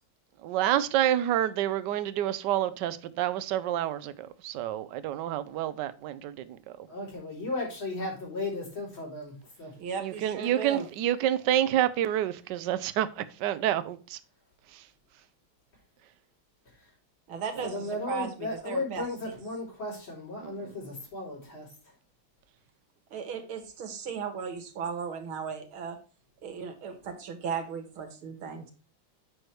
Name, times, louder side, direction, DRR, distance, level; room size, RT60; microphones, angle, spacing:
voice 1, 0.4-6.4 10.0-14.2 20.4-20.5, right 12 dB, 65° right, 1.2 m, -28 dB
voice 2, 6.9-9.8 17.6-21.7, left 2 dB, 75° left, 4.4 m, -35 dB
voice 3, 9.8-10.9 17.3-17.7 18.1-19.0 23.1-26.0 26.4-28.7, right 6 dB, 85° right, 2.3 m, -36 dB
7.9 x 6.0 x 3.2 m
omnidirectional pair, 2.2 m